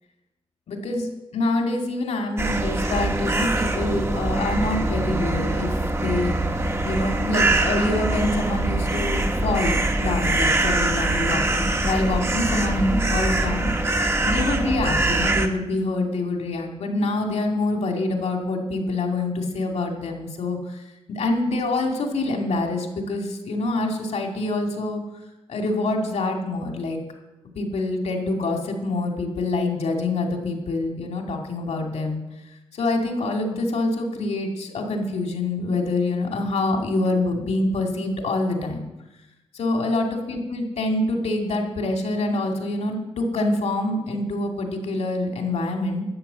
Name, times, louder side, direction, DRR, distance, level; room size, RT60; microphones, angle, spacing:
voice 1, 0.7-5.7 6.0-6.4 6.8-13.7 14.2-20.8 21.1-25.0 25.5-27.0 27.6-32.2 32.7-38.9 39.5-46.0, left 2 dB, 75° left, 2 dB, 2.5 m, -26 dB
sound 1, 2.4-15.5, right 2 dB, 25° right, 1.3 m, -23 dB
12.5 x 8.4 x 6.8 m, 0.98 s
wide cardioid pair, 110°, 11 cm